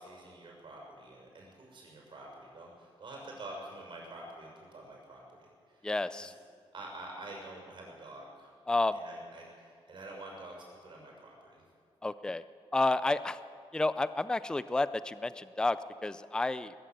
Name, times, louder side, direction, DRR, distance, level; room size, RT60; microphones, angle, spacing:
voice 1, 0.0-5.9 6.2-6.3 6.7-8.5 8.9-11.6, right 2 dB, 55° right, -1 dB, 6.6 m, -47 dB
voice 2, 5.8-6.3 8.7-9.0 12.0-12.4 12.7-13.4 13.7-16.7, left 2 dB, 10° left, 14 dB, 0.4 m, -30 dB
20.0 x 14.5 x 9.0 m, 2.2 s
wide cardioid pair, 155°, 10 cm